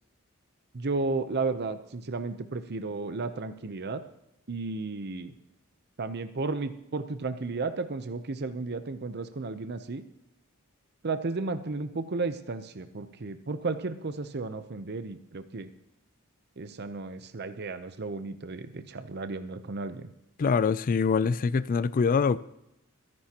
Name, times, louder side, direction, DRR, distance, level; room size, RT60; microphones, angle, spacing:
voice 1, 0.7-4.0 4.5-5.3 6.0-10.0 11.0-15.7 16.6-20.1, right 3 dB, 50° right, 0.7 m, -33 dB
voice 2, 20.4-22.4, left 5 dB, 40° left, 0.3 m, -24 dB
23.0 x 11.0 x 2.9 m
head